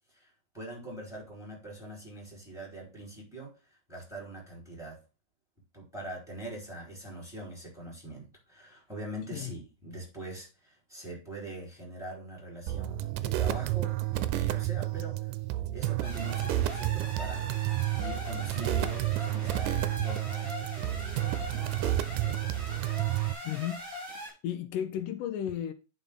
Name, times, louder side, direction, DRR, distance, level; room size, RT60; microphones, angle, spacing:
voice 1, 0.1-3.5 3.9-5.0 5.7-15.3 15.7-17.4 17.9-22.5, right 1 dB, ahead, 4.2 m, -43 dB
sound 1, 12.7-23.3, right 15 dB, 85° right, 2.2 m, -30 dB
sound 2, 16.0-24.3, left 1 dB, 40° right, 6.0 m, -41 dB
voice 2, 23.4-23.8 24.1-25.7, left 10 dB, 85° left, 2.4 m, -34 dB
9.7 x 5.2 x 3.7 m
omnidirectional pair, 3.7 m